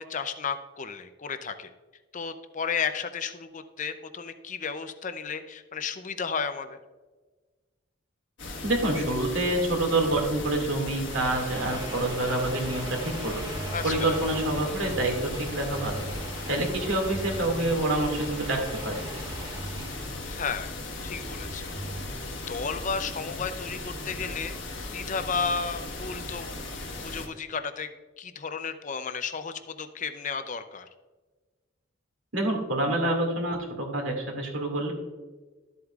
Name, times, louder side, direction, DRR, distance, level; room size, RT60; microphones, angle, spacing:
voice 1, 0.0-1.7 2.1-6.8 13.7-14.2 20.3-21.7 22.5-24.5 24.9-26.6 27.0-30.9, left 5 dB, 40° left, 10 dB, 0.6 m, -33 dB
sound 1, 8.4-27.3, left 2 dB, 60° left, 1.4 m, -37 dB
voice 2, 8.6-13.4 13.8-16.1 16.5-19.1 32.3-34.9, right 1 dB, 70° right, 1 dB, 2.2 m, -27 dB
sound 2, 10.9-20.2, right 2 dB, 20° right, 1.0 m, -41 dB
sound 3, 13.5-22.2, right 1 dB, 85° right, 2.9 m, -42 dB
12.5 x 8.0 x 2.4 m, 1.3 s
head